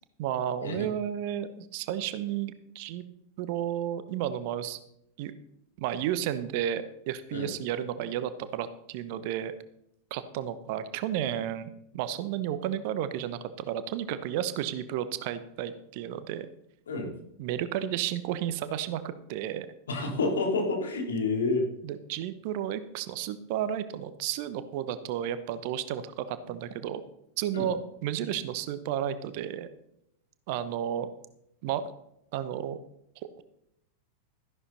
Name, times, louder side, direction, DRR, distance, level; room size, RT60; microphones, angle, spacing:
voice 1, 0.2-3.0 3.4-4.8 5.2-5.3 5.8-9.5 10.1-16.5 17.4-19.7 21.8-27.0 27.4-29.7 30.5-31.1 31.6-31.8 32.3-32.8, right 10 dB, 50° right, 13 dB, 1.0 m, -32 dB
voice 2, 19.9-21.6 27.5-27.7, left 3 dB, 65° left, 2 dB, 3.2 m, -29 dB
13.5 x 11.0 x 4.1 m, 0.78 s
figure-of-eight pair, 90°, 0 cm